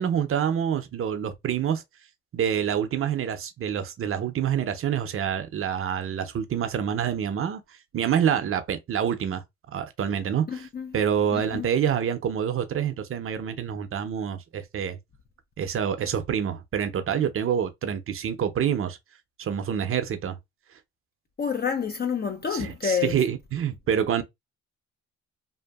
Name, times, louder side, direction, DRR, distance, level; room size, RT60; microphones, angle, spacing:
voice 1, 0.0-1.8 2.3-7.6 7.9-9.4 9.7-10.7 10.9-15.0 15.6-19.0 19.4-20.4 22.5-24.2, right 8 dB, 45° right, 0.6 m, -27 dB
voice 2, 10.5-10.9 11.3-11.7 21.4-23.2, left 7 dB, 35° left, 0.5 m, -28 dB
2.7 x 2.5 x 2.3 m
cardioid pair, 90°, 30 cm